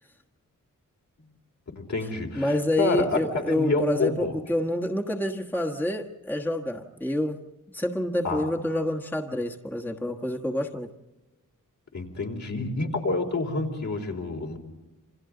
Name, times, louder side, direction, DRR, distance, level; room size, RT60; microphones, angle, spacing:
voice 1, 1.8-4.3 8.2-8.5 11.9-14.6, left 3 dB, 60° left, 1 dB, 3.9 m, -28 dB
voice 2, 2.3-7.4 7.7-10.9, left 1 dB, 5° left, 0 dB, 1.3 m, -28 dB
28.5 x 26.5 x 3.9 m, 1.1 s
wide cardioid pair, 150°, 32 cm